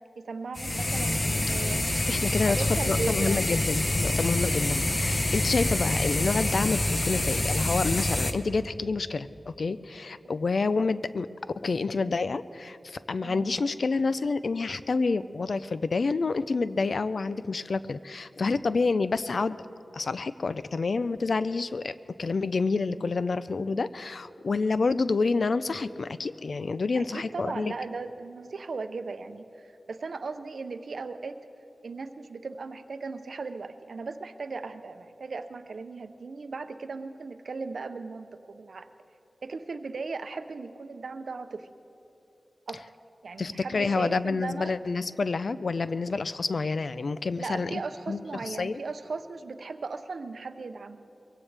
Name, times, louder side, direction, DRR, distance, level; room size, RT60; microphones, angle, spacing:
voice 1, 0.2-1.9 2.4-3.4 4.4-4.6 13.2-13.5 26.9-31.4 31.8-38.9 39.4-41.7 42.7-42.8 43.2-44.8 47.4-51.1, right 4 dB, 80° right, 9 dB, 0.7 m, -37 dB
sound 1, 0.5-8.3, left 1 dB, 35° left, 0.9 m, -27 dB
voice 2, 1.9-11.3 11.6-19.6 19.9-27.7 43.4-47.8 48.1-48.8, left 4 dB, 70° left, 14 dB, 0.4 m, -28 dB
22.5 x 17.0 x 3.4 m, 2.8 s
wide cardioid pair, 65°, 0 cm